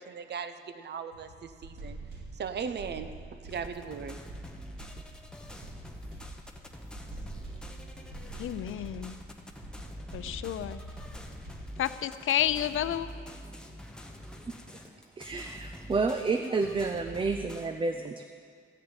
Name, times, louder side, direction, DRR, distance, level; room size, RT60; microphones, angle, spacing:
voice 1, 0.0-2.0 2.4-4.2, right 6 dB, 55° right, 10 dB, 0.8 m, -38 dB
sound 1, 1.1-11.8, right 1 dB, 75° right, 4.5 m, -46 dB
sound 2, 3.5-17.7, equal, 5° left, 1.0 m, -45 dB
voice 2, 8.4-9.2 10.1-10.8 11.8-13.1, left 11 dB, 85° left, 13 dB, 0.5 m, -30 dB
voice 3, 15.2-18.2, right 4 dB, 25° right, 6 dB, 0.5 m, -30 dB
14.5 x 6.7 x 8.9 m, 2.2 s
wide cardioid pair, 145°, 20 cm